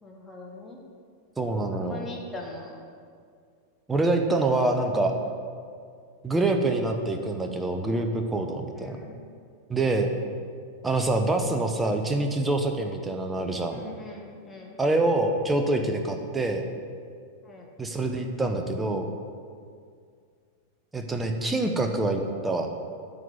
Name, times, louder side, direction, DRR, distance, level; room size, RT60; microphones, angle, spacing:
voice 1, 0.0-0.8 1.7-2.8 8.7-9.3 13.7-14.8 17.4-17.7, left 2 dB, 10° left, -1 dB, 1.3 m, -42 dB
voice 2, 1.4-2.1 3.9-5.1 6.2-9.0 9.7-10.1 10.8-13.8 14.8-16.6 17.8-19.1 20.9-22.7, right 2 dB, 10° right, 4 dB, 0.8 m, -26 dB
9.3 x 3.9 x 7.2 m, 2.2 s
figure-of-eight pair, 90°, 0 cm